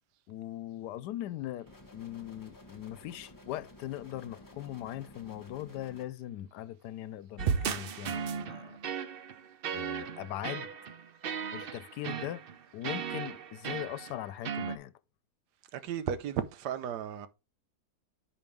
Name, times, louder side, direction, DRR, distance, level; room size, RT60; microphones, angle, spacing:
voice 1, 0.3-8.8 9.7-10.7 11.5-12.4 12.7-14.9, left 13 dB, 85° left, 1.2 m, -40 dB
sound 1, 1.7-6.1, left 1 dB, 15° left, 0.8 m, -53 dB
sound 2, 7.4-14.8, right 7 dB, 65° right, 0.5 m, -36 dB
voice 2, 15.7-17.3, right 9 dB, 90° right, 1.3 m, -34 dB
9.5 x 5.2 x 3.2 m
omnidirectional pair, 1.7 m